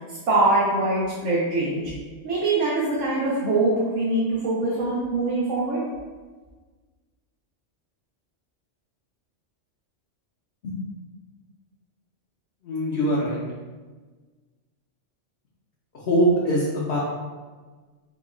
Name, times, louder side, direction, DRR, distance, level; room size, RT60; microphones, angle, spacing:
voice 1, 0.1-1.9 2.2-5.8, right 2 dB, 90° right, -6 dB, 1.2 m, -23 dB
voice 2, 12.6-13.4 15.9-17.0, equal, 55° left, -6 dB, 0.9 m, -23 dB
4.9 x 2.3 x 3.7 m, 1.4 s
omnidirectional pair, 1.2 m